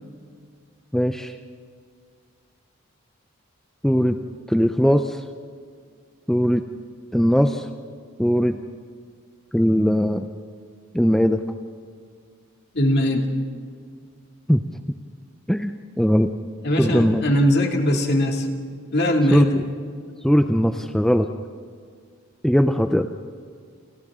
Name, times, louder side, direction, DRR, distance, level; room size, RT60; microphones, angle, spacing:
voice 1, 0.9-1.4 3.8-4.2 4.5-5.2 6.3-6.6 7.1-7.7 8.2-8.6 9.5-10.3 10.9-11.4 14.5-14.6 15.5-16.3 16.8-17.2 19.3-19.6 20.2-21.3 22.4-23.1, equal, ahead, 6 dB, 0.5 m, -19 dB
voice 2, 12.7-13.3 16.6-18.5 18.9-19.5, equal, 50° left, 2 dB, 2.5 m, -20 dB
29.5 x 29.0 x 3.7 m, 2.1 s
head